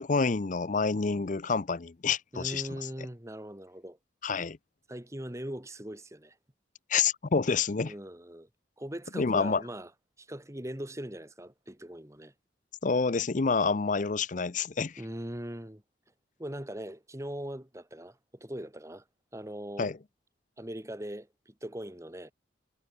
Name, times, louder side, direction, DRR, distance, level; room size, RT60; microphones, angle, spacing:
voice 1, 0.0-2.6 4.2-4.6 6.9-7.9 9.1-9.6 12.8-15.0 19.8-20.0, left 4 dB, 40° left, 0.5 m, -28 dB
voice 2, 2.3-4.0 4.9-6.4 7.8-8.5 8.8-9.9 10.2-12.3 15.0-15.8 16.4-19.0 19.3-19.9 20.6-22.3, right 1 dB, 15° right, 1.6 m, -40 dB
head